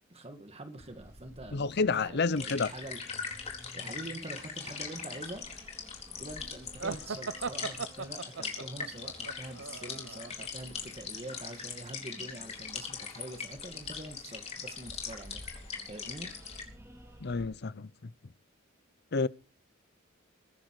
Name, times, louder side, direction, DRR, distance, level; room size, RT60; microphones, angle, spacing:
voice 1, 0.1-3.4 3.7-5.5 6.2-15.4 15.9-16.3, right 1 dB, 30° right, 1.9 m, -45 dB
sound 1, 0.8-17.4, equal, 15° right, 4.4 m, -54 dB
voice 2, 1.5-2.7 17.2-17.9 19.1-19.3, left 4 dB, 55° left, 0.7 m, -29 dB
sound 2, 2.3-16.6, left 5 dB, 35° left, 4.2 m, -41 dB
sound 3, 6.8-10.5, right 5 dB, 65° right, 0.8 m, -39 dB
22.5 x 11.0 x 4.8 m
head